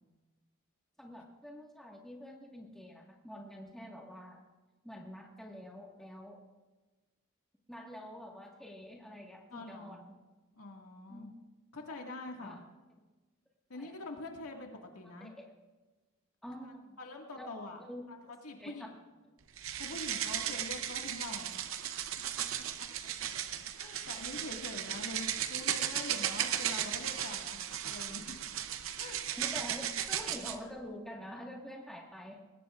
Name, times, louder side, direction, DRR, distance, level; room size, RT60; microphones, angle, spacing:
voice 1, 1.0-4.4 4.8-6.4 7.7-10.2 11.1-11.4 11.9-12.0 12.4-12.6 13.7-14.0 15.2-15.5 16.4-17.0 17.3-17.5 17.8-18.3 18.6-18.9 23.0-23.2 29.3-32.4, equal, ahead, -1 dB, 1.6 m, -47 dB
voice 2, 9.5-10.1 10.6-11.3 11.7-12.6 13.7-15.3 17.0-17.8 18.4-18.9 19.8-21.5 22.2-22.3 22.8-22.9 23.8-27.6 27.8-28.4 29.0-29.2, left 2 dB, 85° left, 1 dB, 1.9 m, -44 dB
sound 1, 19.6-30.6, right 10 dB, 65° right, 0.7 m, -36 dB
21.0 x 17.5 x 2.5 m, 1.2 s
head